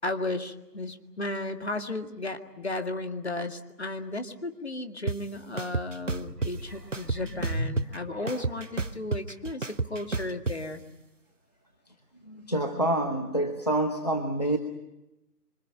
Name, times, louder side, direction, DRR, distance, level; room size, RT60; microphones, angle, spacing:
voice 1, 0.0-10.8, left 2 dB, 40° left, 6 dB, 2.0 m, -34 dB
sound 1, 5.1-5.2 5.6-6.5 6.9-8.0 8.3-10.6, right 3 dB, 50° right, 0.9 m, -30 dB
sound 2, 6.2-8.8 9.4-9.5, equal, 5° right, 1.9 m, -37 dB
voice 2, 12.3-14.6, right 1 dB, 25° left, 6 dB, 1.0 m, -27 dB
27.0 x 25.0 x 8.9 m, 0.95 s
figure-of-eight pair, 165°, 49 cm